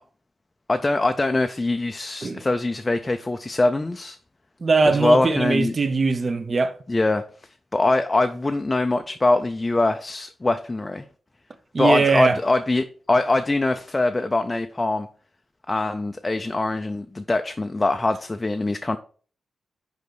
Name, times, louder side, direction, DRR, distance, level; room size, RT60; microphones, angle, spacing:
voice 1, 0.7-4.2 4.9-5.7 6.9-7.2 7.7-11.0 11.8-15.1 15.7-19.0, left 2 dB, 15° left, 0.4 m, -23 dB
voice 2, 4.6-6.7 11.7-12.4, right 4 dB, 30° right, 0.6 m, -21 dB
5.4 x 5.1 x 6.1 m
wide cardioid pair, 170°, 0 cm